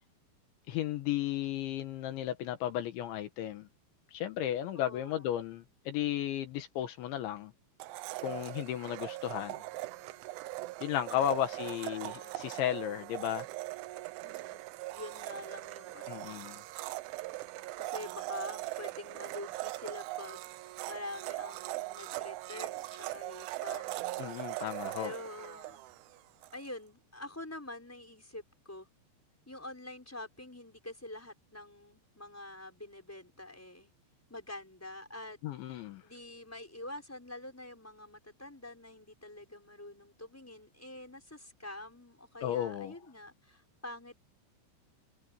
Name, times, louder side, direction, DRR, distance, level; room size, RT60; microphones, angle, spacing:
voice 1, 0.7-3.7 4.1-7.5 8.2-9.6 10.8-13.5 16.1-16.6 24.2-25.1 35.4-36.0 42.4-42.9, left 12 dB, 80° left, 3.7 m, -34 dB
voice 2, 4.7-5.3 11.1-12.4 14.2-14.6 14.9-16.6 17.8-24.0 25.0-25.8 26.5-28.9 29.5-33.9 34.3-35.4 35.7-44.3, left 1 dB, 5° left, 5.8 m, -46 dB
Domestic sounds home sounds, 7.8-26.6, right 18 dB, 85° right, 3.3 m, -40 dB
omnidirectional pair, 5.4 m